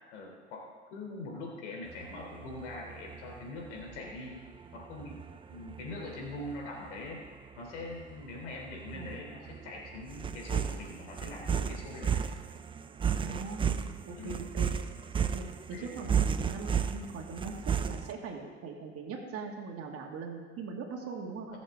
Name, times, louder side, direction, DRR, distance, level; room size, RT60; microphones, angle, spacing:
voice 1, 0.1-4.5 4.7-5.2 5.5-7.2 7.6-12.2 14.2-14.6 15.7-15.9 21.5-21.6, left 2 dB, 75° left, 0 dB, 3.5 m, -43 dB
sound 1, 1.9-18.1, right 7 dB, 15° right, 0.5 m, -34 dB
voice 2, 13.2-14.7 15.3-21.6, right 4 dB, 40° right, 1 dB, 2.3 m, -41 dB
21.5 x 7.3 x 3.7 m, 1.5 s
hypercardioid pair, 95°, 35 cm